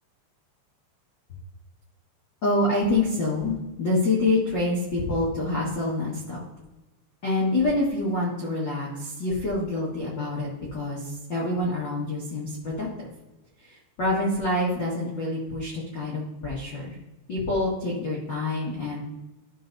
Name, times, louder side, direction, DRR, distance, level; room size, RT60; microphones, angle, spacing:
voice 1, 2.4-6.4 7.2-13.1 13.6-16.9 17.3-19.0, left 2 dB, 70° left, -6 dB, 1.0 m, -26 dB
13.0 x 5.4 x 2.6 m, 1.1 s
omnidirectional pair, 5.0 m